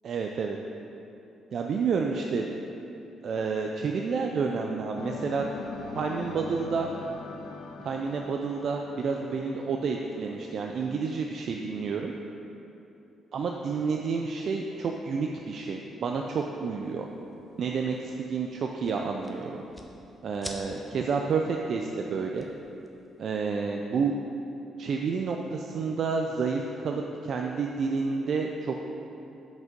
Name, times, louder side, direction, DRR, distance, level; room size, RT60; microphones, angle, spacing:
voice 1, 0.0-0.6 1.5-2.5 3.2-5.5 5.9-6.9 7.8-12.1 13.3-17.1 17.6-19.6 20.2-22.5 23.2-24.3 24.8-28.8, right 5 dB, 60° right, 2 dB, 0.4 m, -30 dB
sound 1, 4.9-10.9, left 5 dB, 80° left, 0.5 m, -42 dB
sound 2, 16.8-23.5, equal, 5° left, 0.7 m, -50 dB
6.1 x 5.2 x 5.2 m, 2.9 s
cardioid pair, 90°, 0 cm